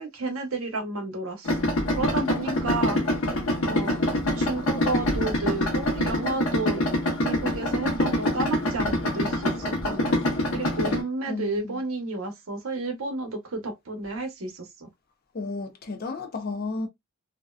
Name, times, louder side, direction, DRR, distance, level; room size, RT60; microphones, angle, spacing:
voice 1, 0.0-3.0 3.6-4.0 4.4-6.8 7.2-10.1 10.5-14.9, right 3 dB, 80° right, 0.8 m, -31 dB
Idling, 1.5-11.0, left 1 dB, 85° left, 0.9 m, -25 dB
voice 2, 2.2-3.0 11.3-11.8 15.3-16.9, left 3 dB, 45° left, 0.5 m, -33 dB
2.6 x 2.1 x 2.2 m
head